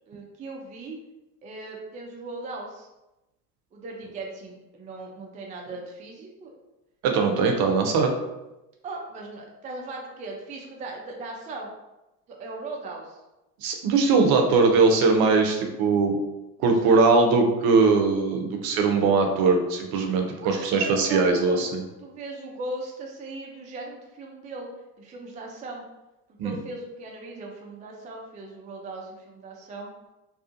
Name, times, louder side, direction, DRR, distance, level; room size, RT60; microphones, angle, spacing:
voice 1, 0.1-1.0 1.4-2.9 3.7-6.5 7.2-7.7 8.8-11.7 12.3-13.2 16.6-17.3 20.3-21.7 22.0-24.7 25.0-25.8 26.4-29.9, right 2 dB, 20° right, 0 dB, 0.4 m, -38 dB
voice 2, 7.0-8.1 13.6-16.2 16.6-21.8 26.4-26.6, right 4 dB, 55° right, 3 dB, 0.6 m, -21 dB
2.6 x 2.4 x 2.5 m, 0.97 s
hypercardioid pair, 70°, 45 cm